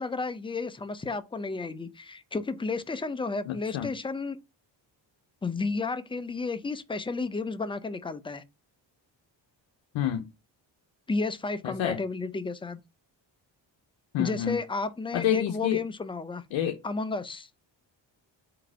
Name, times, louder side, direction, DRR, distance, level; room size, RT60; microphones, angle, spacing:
voice 1, 0.0-4.4 5.4-8.4 11.1-12.8 14.2-16.4 16.8-17.5, left 3 dB, 10° left, 0.5 m, -32 dB
voice 2, 3.5-3.9 9.9-10.3 11.6-12.0 14.1-14.6 15.1-15.8 16.5-16.8, left 11 dB, 85° left, 0.7 m, -28 dB
3.8 x 2.8 x 4.8 m
cardioid pair, 65°, 46 cm